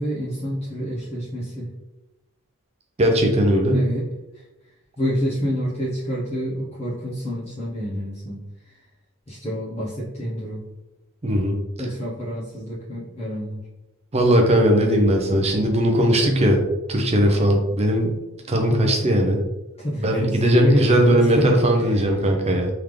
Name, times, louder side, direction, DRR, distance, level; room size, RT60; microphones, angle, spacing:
voice 1, 0.0-1.7 3.7-4.0 5.0-8.4 9.3-10.6 11.8-13.6 18.7-18.9 19.8-21.5 21.8-21.9, equal, 30° left, -9 dB, 0.9 m, -27 dB
voice 2, 3.0-3.9 11.2-11.6 14.1-16.6 16.9-18.1 18.5-19.4 20.0-22.7, right 1 dB, 30° right, 2 dB, 0.6 m, -18 dB
3.6 x 3.5 x 3.2 m, 1.0 s
head